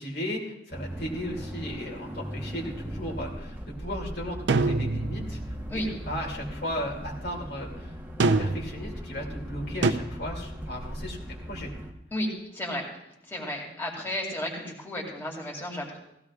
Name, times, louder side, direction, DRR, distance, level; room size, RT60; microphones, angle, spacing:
voice 1, 0.0-5.4 5.7-7.9 8.2-11.2 11.5-11.7 13.7-13.8, equal, 60° left, -2 dB, 2.5 m, -36 dB
sound 1, 0.7-11.9, equal, 10° right, 1.1 m, -38 dB
sound 2, 4.5-5.4 8.2-8.8 9.8-9.9, right 3 dB, 70° right, 0.6 m, -24 dB
voice 2, 12.1-12.9 13.3-16.0, left 1 dB, 15° left, -3 dB, 2.4 m, -33 dB
18.0 x 15.5 x 2.4 m, 0.82 s
head